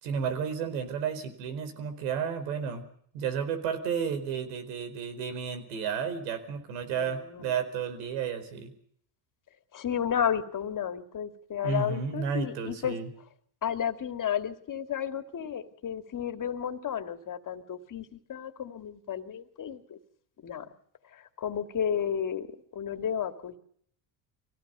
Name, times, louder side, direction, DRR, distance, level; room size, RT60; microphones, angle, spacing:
voice 1, 0.0-2.8 3.1-8.7 11.6-13.1, right 7 dB, 80° right, 9 dB, 4.5 m, -32 dB
voice 2, 7.0-7.4 9.7-13.0 13.6-20.0 20.4-20.7 21.1-23.6, left 8 dB, 40° left, 8 dB, 2.5 m, -32 dB
24.0 x 17.0 x 6.9 m, 0.64 s
supercardioid pair, 85°, 48 cm